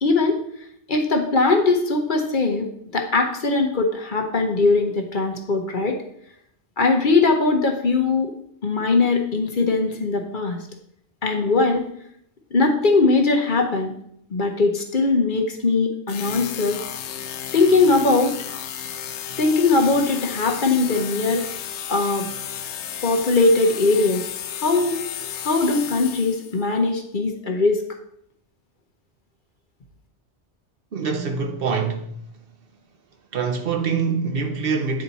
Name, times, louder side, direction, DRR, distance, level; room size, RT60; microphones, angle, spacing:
voice 1, 0.0-0.4 0.9-2.7 2.9-6.0 6.8-8.3 8.6-10.6 11.2-11.8 12.5-13.9 14.3-16.8 17.5-18.4 19.4-21.4 21.9-22.3 23.0-24.2 24.6-25.0 25.4-27.8, left 3 dB, 50° left, 1.0 m, -20 dB
sound 1, 16.1-26.6, left 9 dB, 80° left, 0.9 m, -33 dB
voice 2, 30.9-32.1 33.3-35.0, right 5 dB, 60° right, 0.9 m, -24 dB
8.6 x 4.2 x 4.1 m
omnidirectional pair, 1.2 m